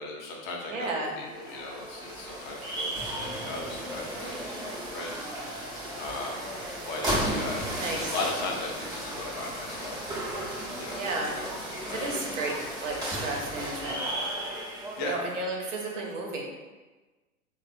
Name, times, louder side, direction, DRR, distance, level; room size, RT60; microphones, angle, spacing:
voice 1, 0.0-4.6 4.9-5.7 6.0-6.5 6.8-10.0 10.8-11.0 11.3-11.5 11.8-12.2 15.0-15.1, left 2 dB, 35° left, -1 dB, 0.8 m, -37 dB
voice 2, 0.7-1.1 7.8-8.1 10.9-11.3 11.9-14.0 15.0-16.4, right 2 dB, 55° right, 0 dB, 1.1 m, -33 dB
sound 1, 1.2-15.2, right 1 dB, 10° right, 0.7 m, -34 dB
3.3 x 2.5 x 4.2 m, 1.2 s
figure-of-eight pair, 115°, 43 cm